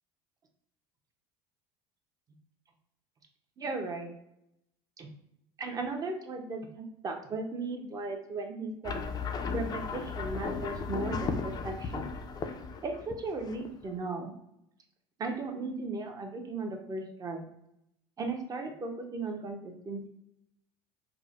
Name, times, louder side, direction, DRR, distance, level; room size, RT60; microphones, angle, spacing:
voice 1, 3.6-4.1 5.0-5.1 5.6-9.0 9.5-12.1 12.8-14.3 15.2-17.5 18.2-20.1, right 3 dB, 30° right, 3 dB, 0.6 m, -36 dB
sound 1, 8.8-14.0, left 5 dB, 30° left, 0.3 m, -35 dB
4.8 x 2.0 x 2.4 m, 0.81 s
supercardioid pair, 115°, 13 cm